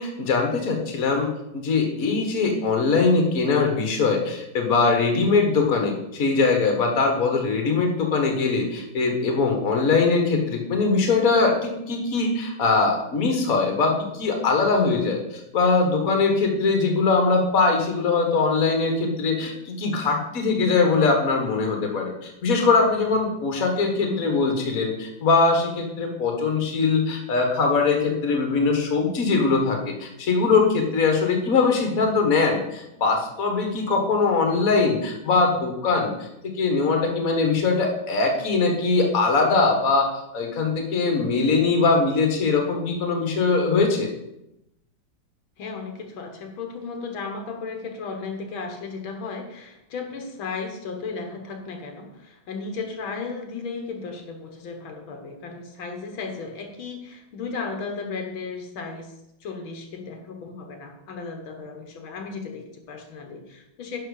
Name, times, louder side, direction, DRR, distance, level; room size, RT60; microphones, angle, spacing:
voice 1, 0.0-44.1, left 4 dB, 45° left, 3 dB, 1.8 m, -22 dB
voice 2, 5.1-5.4 24.0-24.3 45.6-59.1 59.4-64.0, left 4 dB, 80° left, 4 dB, 2.0 m, -35 dB
10.5 x 4.4 x 6.5 m, 0.84 s
omnidirectional pair, 2.1 m